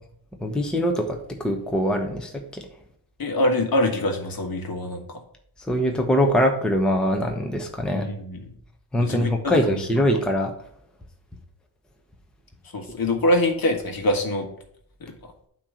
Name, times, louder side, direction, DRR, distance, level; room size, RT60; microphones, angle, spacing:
voice 1, 0.4-2.6 5.7-8.1 8.9-10.5, equal, ahead, 2 dB, 1.0 m, -23 dB
voice 2, 3.2-5.2 7.9-8.5 9.0-9.9 12.7-14.5 15.0-15.1, left 1 dB, 45° left, 4 dB, 1.7 m, -24 dB
8.5 x 3.2 x 6.4 m, 0.67 s
cardioid pair, 85°, 50 cm